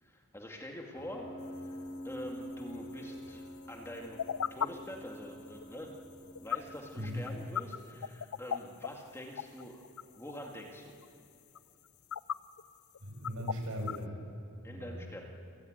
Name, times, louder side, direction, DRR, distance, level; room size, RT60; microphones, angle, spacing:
voice 1, 0.0-1.8 2.0-4.2 4.5-5.9 6.4-9.8 10.2-10.9 14.6-15.2, left 1 dB, 10° left, 0 dB, 2.3 m, -45 dB
Piano, 0.9-7.4, equal, 45° left, 2.0 m, -46 dB
sound 1, 2.0-2.3 3.0-3.1 3.7-3.8 4.0-4.7 5.6-6.0 6.3-6.6 7.0-7.3 7.6-7.8 8.0-8.9 9.2-10.5 11.0-11.1 11.6-11.7 11.9-12.6 12.9-13.0 13.2-14.0, left 8 dB, 75° left, 0.5 m, -35 dB
voice 2, 13.0-14.1 14.7-15.0, equal, 70° right, 2 dB, 5.8 m, -38 dB
28.5 x 16.0 x 9.5 m, 2.6 s
head